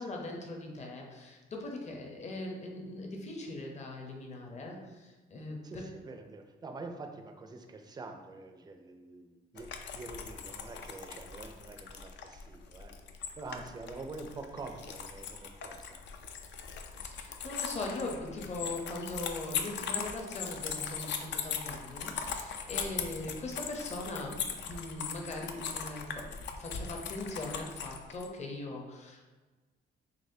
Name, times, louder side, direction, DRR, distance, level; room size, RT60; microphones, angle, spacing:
voice 1, 0.0-5.9 17.1-29.3, left 2 dB, 35° left, 0 dB, 0.7 m, -40 dB
voice 2, 5.6-12.9 13.4-16.0 23.0-23.3, right 3 dB, 20° right, 5 dB, 0.4 m, -46 dB
sound 1, 9.6-28.3, left 6 dB, 65° left, 0.4 m, -40 dB
4.1 x 2.9 x 2.7 m, 1.3 s
cardioid pair, 90°, 20 cm